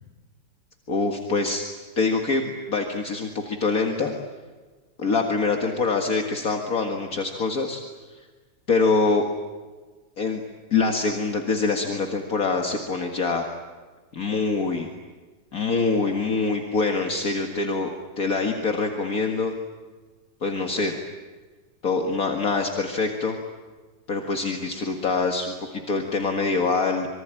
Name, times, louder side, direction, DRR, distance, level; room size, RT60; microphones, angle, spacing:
voice 1, 0.9-1.6 2.0-4.1 5.0-7.8 8.1-8.3 8.7-9.2 10.2-10.4 10.7-13.5 14.1-14.9 15.5-17.9 18.2-19.5 20.4-20.9 21.8-23.4 24.1-27.1, left 4 dB, 50° left, 3 dB, 2.2 m, -24 dB
26.5 x 23.5 x 9.0 m, 1.4 s
omnidirectional pair, 1.9 m